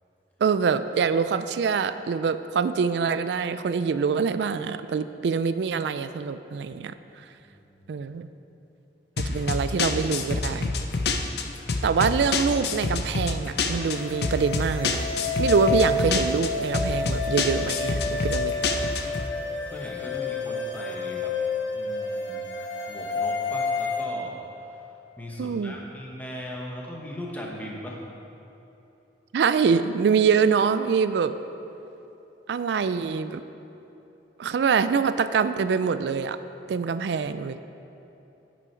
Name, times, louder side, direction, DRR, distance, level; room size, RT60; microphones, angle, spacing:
voice 1, 0.4-6.9 7.9-8.3 9.2-10.7 11.8-15.0 15.4-18.5 25.4-25.7 29.3-31.3 32.5-33.4 34.4-36.4 36.7-37.6, right 6 dB, 70° right, 12 dB, 0.3 m, -24 dB
sound 1, 9.2-19.3, left 3 dB, 65° left, 0.6 m, -28 dB
sound 2, 13.8-24.0, left 4 dB, 85° left, 1.4 m, -30 dB
voice 2, 19.6-21.3 21.7-22.4 22.9-24.9 25.2-28.0, equal, 10° left, -2 dB, 1.1 m, -39 dB
10.5 x 6.3 x 4.5 m, 3.0 s
head